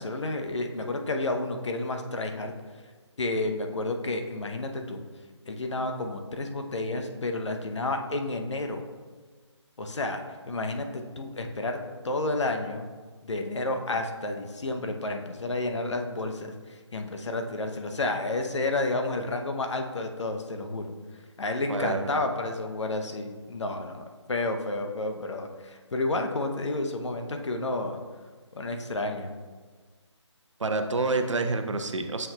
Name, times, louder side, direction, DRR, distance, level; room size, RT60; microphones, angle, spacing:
voice 1, 0.0-2.5 3.2-5.0 5.5-8.8 9.8-10.2 10.5-11.8 12.0-12.9 13.3-20.9 21.4-28.0 28.5-29.3, left 2 dB, 70° left, 4 dB, 0.8 m, -31 dB
voice 2, 21.7-22.2 30.6-32.3, right 3 dB, 80° right, 7 dB, 0.6 m, -28 dB
7.0 x 5.9 x 2.3 m, 1.4 s
figure-of-eight pair, 160°, 16 cm